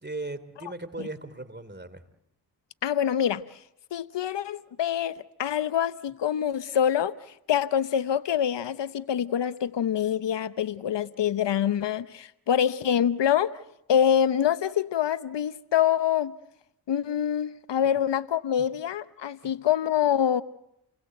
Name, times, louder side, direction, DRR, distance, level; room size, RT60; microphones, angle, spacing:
voice 1, 0.0-2.0, right 2 dB, 25° right, 3.2 m, -37 dB
voice 2, 2.8-3.4 3.9-7.1 7.5-13.6 13.9-16.3 16.9-20.4, left 9 dB, 80° left, 0.9 m, -25 dB
29.5 x 21.0 x 7.8 m
cardioid pair, 45°, 42 cm